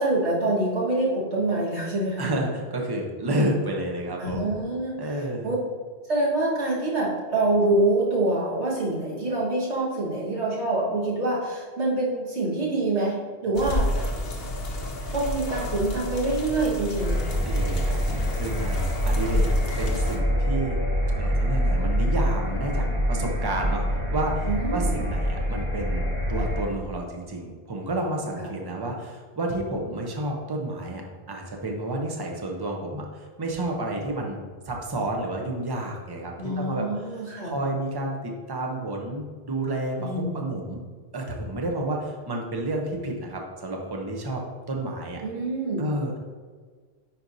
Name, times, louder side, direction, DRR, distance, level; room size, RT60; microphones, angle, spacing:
voice 1, 0.0-2.3 4.2-5.6 6.1-14.1 15.1-17.2 24.4-24.9 28.4-28.5 36.4-37.6 40.0-40.4 45.2-45.9, right 2 dB, 90° right, -5 dB, 1.9 m, -26 dB
voice 2, 2.2-4.5 5.0-5.5 15.0-15.1 17.4-20.8 21.2-31.0 31.3-34.4 34.7-40.8 41.1-44.4 44.7-45.2 45.8-46.2, right 1 dB, 25° right, 1 dB, 0.8 m, -30 dB
sound 1, 13.5-20.2, left 1 dB, 65° left, 1.0 m, -30 dB
sound 2, 17.0-26.7, equal, 65° right, 2.3 m, -26 dB
9.9 x 4.5 x 2.7 m, 1.5 s
omnidirectional pair, 1.1 m